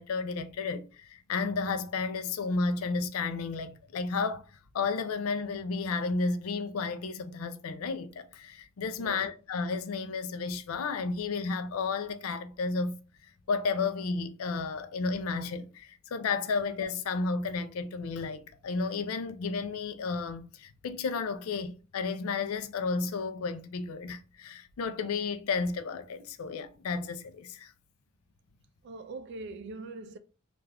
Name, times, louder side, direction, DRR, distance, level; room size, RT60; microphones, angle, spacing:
voice 1, 0.0-4.5 4.7-12.9 13.5-27.7, left 4 dB, 85° left, 0.4 m, -32 dB
voice 2, 9.0-9.3 28.8-30.2, right 3 dB, 55° right, 0.3 m, -42 dB
2.4 x 2.2 x 3.3 m
head